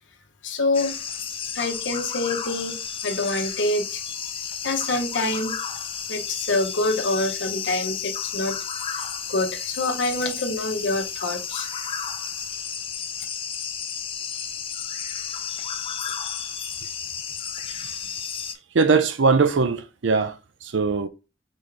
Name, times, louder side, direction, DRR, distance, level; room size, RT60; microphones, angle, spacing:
voice 1, 0.4-1.0 1.5-2.8 3.0-4.0 4.6-5.6 6.1-8.6 9.3-11.7, left 2 dB, 75° left, 0.9 m, -26 dB
sound 1, 0.7-18.6, left 7 dB, 30° left, 0.4 m, -32 dB
voice 2, 18.7-20.3 20.6-21.1, right 4 dB, 80° right, 0.6 m, -20 dB
4.3 x 3.3 x 3.6 m
head